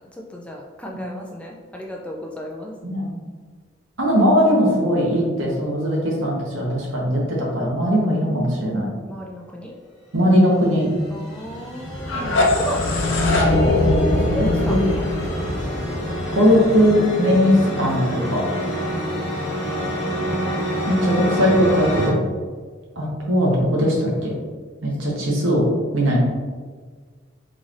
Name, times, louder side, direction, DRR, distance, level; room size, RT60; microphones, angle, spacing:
voice 1, 0.1-2.7 9.1-9.7 11.1-13.3 14.1-15.8 17.8-20.4 24.8-24.9 26.0-26.2, equal, 5° left, -1 dB, 0.3 m, -35 dB
voice 2, 4.0-8.9 10.1-10.9 14.3-14.8 16.3-18.0 18.3-18.5 20.9-22.2 23.0-24.3 24.8-25.7 25.9-26.2, equal, 80° right, -3 dB, 1.0 m, -19 dB
sound 1, 10.5-22.1, equal, 35° left, 1.0 m, -27 dB
sound 2, 11.9-16.8, left 2 dB, 75° left, 0.6 m, -21 dB
3.8 x 3.2 x 2.5 m, 1.5 s
head